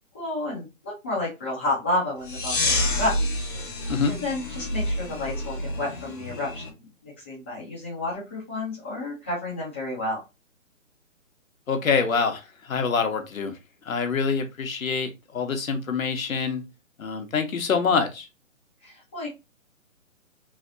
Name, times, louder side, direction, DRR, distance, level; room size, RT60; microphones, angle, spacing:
voice 1, 0.1-3.1 3.5-3.7 4.0-10.2 18.8-19.3, left 1 dB, 10° left, 0.7 m, -31 dB
sound 1, 2.2-6.7, left 1 dB, 40° left, 0.9 m, -28 dB
voice 2, 11.7-13.6 13.8-16.6 17.0-18.3, left 5 dB, 80° left, 1.1 m, -25 dB
3.3 x 2.9 x 2.6 m
hypercardioid pair, 165°, 40 cm